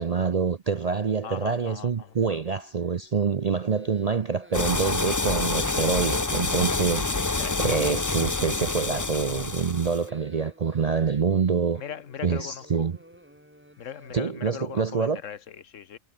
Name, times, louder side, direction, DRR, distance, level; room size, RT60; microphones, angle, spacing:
voice 1, 0.0-7.1 7.6-11.8 12.2-13.0 14.1-15.2, right 5 dB, 45° right, 0.5 m, -26 dB
voice 2, 1.2-2.1 7.1-7.8 11.8-12.9 13.8-16.0, left 8 dB, 75° left, 1.4 m, -39 dB
sound 1, 1.2-14.1, equal, 10° right, 4.4 m, -54 dB
sound 2, 4.5-10.0, left 3 dB, 15° left, 0.7 m, -27 dB
omnidirectional pair, 1.3 m